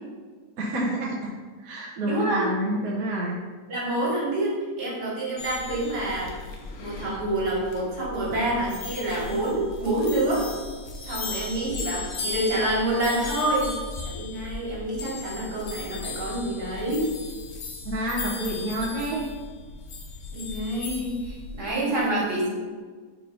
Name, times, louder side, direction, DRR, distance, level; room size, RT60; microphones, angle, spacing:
voice 1, 0.6-1.3 1.6-3.4 17.8-19.3 22.0-22.2, right 1 dB, 60° right, -3 dB, 1.3 m, -28 dB
voice 2, 2.0-2.5 3.7-6.3 6.8-10.5 11.0-13.8 14.0-17.1 20.3-22.5, right 1 dB, 80° right, -5 dB, 2.3 m, -27 dB
sound 1, 5.4-21.7, left 3 dB, 65° left, 1.3 m, -37 dB
4.8 x 4.6 x 5.3 m, 1.5 s
omnidirectional pair, 1.8 m